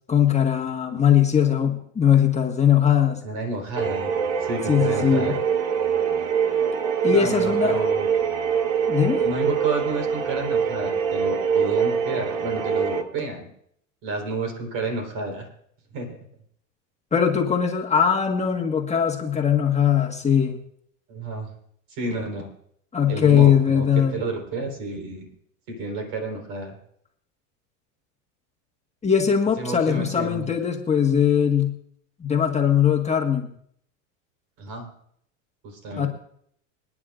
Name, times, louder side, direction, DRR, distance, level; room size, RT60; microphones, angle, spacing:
voice 1, 0.1-3.2 4.7-5.3 7.0-7.8 8.9-9.2 17.1-20.6 22.9-24.1 29.0-31.7 32.2-33.5 36.0-36.1, left 8 dB, 15° left, 0 dB, 1.6 m, -20 dB
voice 2, 3.1-4.1 4.4-5.4 6.1-6.2 7.1-8.1 9.2-13.5 14.0-15.5 15.9-16.2 21.1-21.5 21.9-22.5 23.1-23.9 24.1-25.3 25.7-26.8 29.6-30.5 34.6-34.9 35.6-36.1, right 3 dB, 55° right, 3 dB, 4.5 m, -30 dB
sound 1, 3.7-13.0, right 7 dB, 75° right, 1.6 m, -24 dB
27.5 x 9.8 x 2.6 m, 0.68 s
hypercardioid pair, 105°, 39 cm